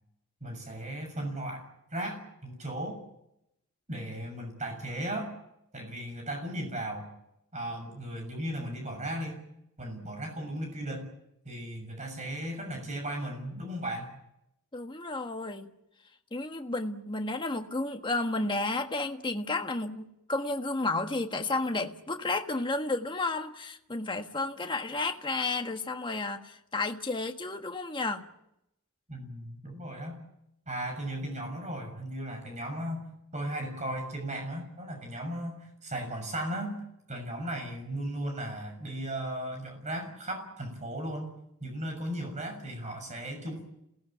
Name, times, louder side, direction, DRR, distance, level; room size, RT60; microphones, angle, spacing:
voice 1, 0.4-3.0 3.9-5.3 5.7-7.1 7.5-9.4 9.8-11.1 11.4-14.1 29.1-30.2 30.7-36.8 37.1-41.3 41.6-43.6, right 1 dB, 30° right, 4 dB, 6.6 m, -36 dB
voice 2, 14.7-15.7 16.3-28.3, left 2 dB, 20° left, 5 dB, 1.5 m, -32 dB
27.5 x 18.0 x 9.2 m, 0.84 s
head